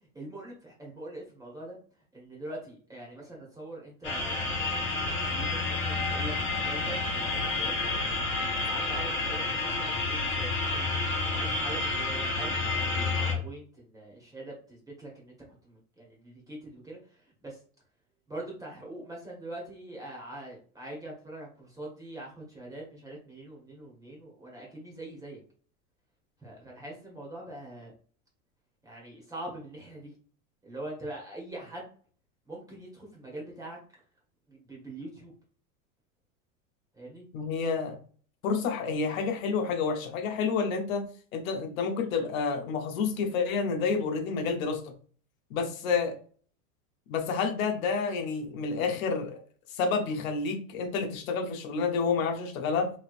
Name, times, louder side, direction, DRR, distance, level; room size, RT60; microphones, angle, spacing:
voice 1, 0.1-1.8 2.1-8.2 8.5-10.9 11.3-15.3 15.6-17.6 18.3-25.4 26.4-27.9 28.8-30.1 30.6-31.9 32.5-33.8 34.5-35.3 36.9-37.2, right 1 dB, 10° right, -3 dB, 1.2 m, -43 dB
sound 1, 4.0-13.3, left 3 dB, 30° left, 1.2 m, -30 dB
voice 2, 37.3-38.0 38.4-44.9 45.5-46.2 47.1-49.4 49.7-52.9, left 5 dB, 75° left, 5 dB, 0.9 m, -29 dB
3.2 x 3.1 x 2.4 m, 0.43 s
supercardioid pair, 135°, 42 cm